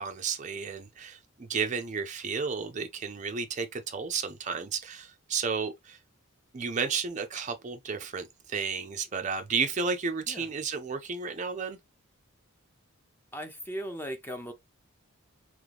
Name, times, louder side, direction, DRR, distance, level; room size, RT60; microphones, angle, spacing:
voice 1, 0.0-6.0 6.5-11.8, right 5 dB, 35° right, 0.4 m, -32 dB
voice 2, 13.3-14.5, equal, 10° left, 0.6 m, -37 dB
3.7 x 3.1 x 3.4 m
head